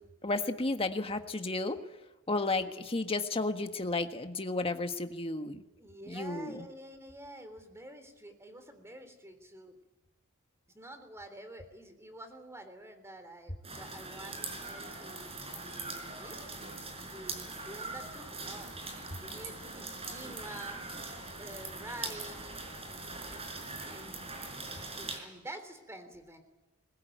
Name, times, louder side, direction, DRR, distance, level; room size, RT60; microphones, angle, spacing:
voice 1, 0.2-1.8 2.3-5.6 6.0-6.7, left 2 dB, 25° left, 7 dB, 1.5 m, -32 dB
voice 2, 5.8-9.8 10.7-15.4 15.6-16.4 16.9-18.7 19.2-20.8 21.4-22.4 23.3-23.4 23.9-24.3 24.8-26.4, right 1 dB, 10° right, 8 dB, 3.5 m, -48 dB
sound 1, 13.6-25.2, right 3 dB, 25° right, 5.0 m, -42 dB
22.0 x 21.0 x 9.4 m, 1.1 s
head